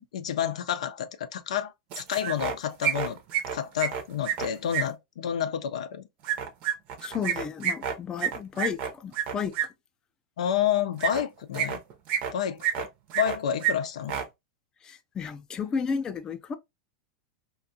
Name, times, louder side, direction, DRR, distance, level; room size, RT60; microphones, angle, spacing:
voice 1, 0.0-3.2 3.5-6.1 10.4-11.8 12.3-12.9 13.1-14.2, left 9 dB, 85° left, 0.4 m, -29 dB
sound 1, 1.9-2.5 2.8-4.8 6.2-9.7 11.0-11.2 11.5-12.3 12.6-13.4 13.6-13.7 14.0-14.2, right 9 dB, 45° right, 0.6 m, -28 dB
voice 2, 7.0-9.5 14.8-16.5, left 6 dB, 20° left, 0.4 m, -32 dB
2.5 x 2.2 x 2.6 m
supercardioid pair, 135°, 3 cm